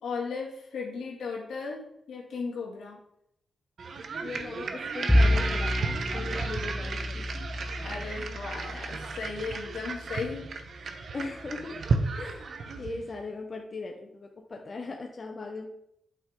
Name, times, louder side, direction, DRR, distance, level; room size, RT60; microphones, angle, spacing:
voice 1, 0.0-3.0 7.8-10.5 11.2-11.3, left 4 dB, 90° left, -2 dB, 2.2 m, -36 dB
sound 1, 3.8-13.1, right 4 dB, 65° right, 0.8 m, -34 dB
voice 2, 4.2-7.2 11.1-11.8 12.2-15.7, left 3 dB, 45° left, 2 dB, 0.9 m, -39 dB
Bowed string instrument, 5.1-11.5, left 1 dB, 10° left, 1.1 m, -30 dB
8.2 x 5.9 x 3.7 m, 0.75 s
cardioid pair, 85°, 0 cm